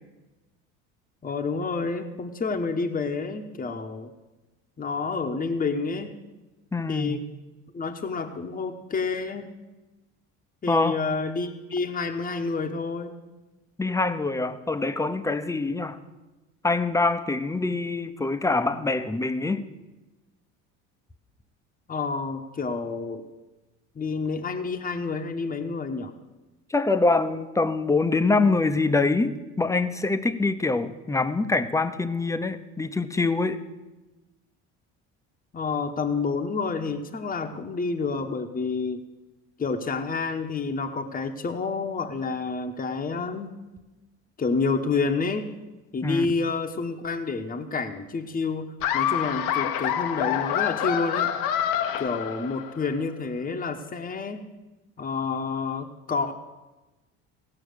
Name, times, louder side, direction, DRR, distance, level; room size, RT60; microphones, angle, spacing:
voice 1, 1.2-4.1 4.8-6.2 6.9-7.2 7.7-9.5 10.6-13.1 21.9-23.3 23.9-26.1 35.5-39.0 39.6-43.5 44.4-45.5 45.9-51.3 52.0-54.5 55.0-56.3, left 4 dB, 25° left, 1.0 m, -29 dB
voice 2, 6.7-7.2 10.7-11.0 13.8-16.0 16.6-19.7 26.7-33.6 46.0-46.3, left 3 dB, 10° left, 0.7 m, -24 dB
Laughter, 48.8-52.8, left 10 dB, 65° left, 0.9 m, -27 dB
16.5 x 5.9 x 6.6 m
supercardioid pair, 80°, 35 cm